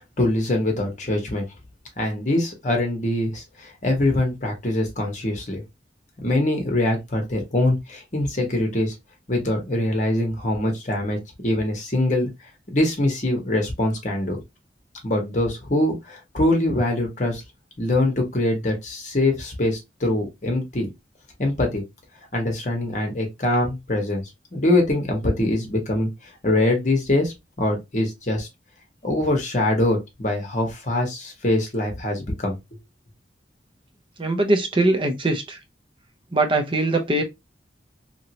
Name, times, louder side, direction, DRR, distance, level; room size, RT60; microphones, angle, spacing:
voice 1, 0.2-1.5 2.0-5.6 6.2-8.9 9.3-12.3 12.7-14.4 15.0-17.4 17.8-20.9 21.4-21.8 22.3-26.1 26.4-28.5 29.0-32.6, left 1 dB, 40° left, 1.1 m, -23 dB
voice 2, 34.2-35.6 36.3-37.2, right 2 dB, 25° right, 0.6 m, -21 dB
3.0 x 2.7 x 2.8 m
head